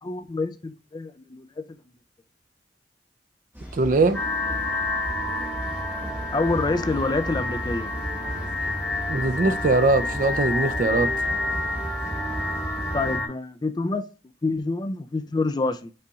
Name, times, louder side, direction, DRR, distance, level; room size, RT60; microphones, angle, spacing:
voice 1, 0.0-1.6 6.3-7.9 12.9-14.1 14.4-15.9, left 3 dB, 25° left, 0.3 m, -27 dB
sound 1, 3.5-13.2, equal, 15° right, 1.5 m, -35 dB
voice 2, 3.7-4.2 9.1-11.1, right 3 dB, 50° right, 0.4 m, -21 dB
sound 2, 4.1-13.3, left 2 dB, 10° left, 1.8 m, -29 dB
5.5 x 4.0 x 2.3 m
head